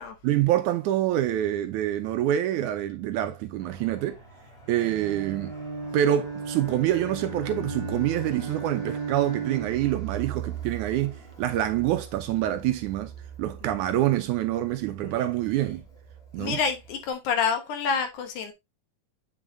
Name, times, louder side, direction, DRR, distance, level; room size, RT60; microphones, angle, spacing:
voice 1, 0.2-4.2 4.7-5.5 5.9-13.1 13.4-15.8 16.3-16.6, right 12 dB, 75° right, 1.9 m, -26 dB
Fixed-wing aircraft airplane, 3.6-17.1, right 4 dB, 50° left, 5.0 m, -42 dB
Bowed string instrument, 4.7-10.0, right 6 dB, 25° right, 1.1 m, -36 dB
voice 2, 16.4-18.5, left 6 dB, 70° left, 2.6 m, -28 dB
7.9 x 6.1 x 2.7 m
omnidirectional pair, 3.8 m